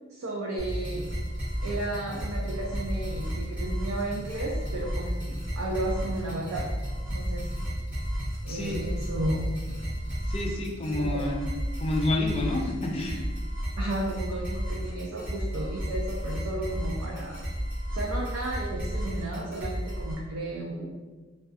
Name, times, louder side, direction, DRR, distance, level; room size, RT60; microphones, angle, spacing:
voice 1, 0.1-1.0 1.6-6.6 7.1-7.5 8.4-9.4 11.0-11.2 13.8-17.4 17.9-20.9, right 2 dB, 85° right, -3 dB, 0.4 m, -33 dB
sound 1, 0.6-20.1, equal, 10° right, 0.9 m, -32 dB
voice 2, 8.5-8.8 10.3-11.5 11.8-13.2, left 2 dB, 30° left, 0 dB, 0.3 m, -29 dB
2.5 x 2.3 x 2.3 m, 1.3 s
head